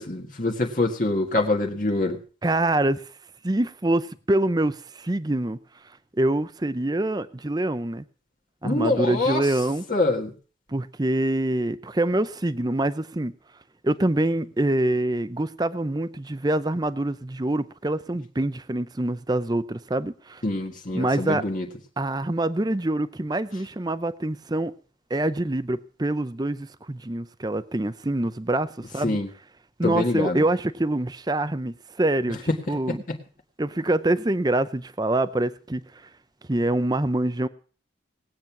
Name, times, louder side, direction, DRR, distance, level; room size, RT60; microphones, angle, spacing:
voice 1, 0.0-2.2 8.6-9.4 9.9-10.3 20.4-21.6 29.0-29.3 29.8-30.4, left 2 dB, 45° left, 1.7 m, -25 dB
voice 2, 2.4-3.1 3.4-5.6 6.2-8.0 8.6-9.8 10.7-13.3 13.8-20.4 20.9-21.4 22.0-24.7 25.1-29.2 29.8-32.4 32.7-33.0 33.6-36.0 36.5-37.5, right 1 dB, 20° right, 0.6 m, -25 dB
19.0 x 8.9 x 6.0 m
head